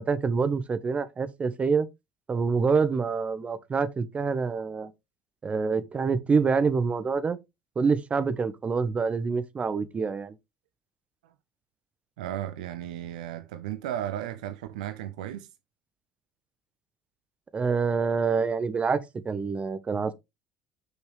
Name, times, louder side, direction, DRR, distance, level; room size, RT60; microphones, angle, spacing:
voice 1, 0.0-1.9 2.3-4.9 5.4-7.4 7.7-10.3 17.5-19.0 19.2-20.1, right 5 dB, 30° right, 1.2 m, -26 dB
voice 2, 12.2-15.5, right 11 dB, 70° right, 0.7 m, -35 dB
9.5 x 6.0 x 3.4 m
figure-of-eight pair, 60°, 4 cm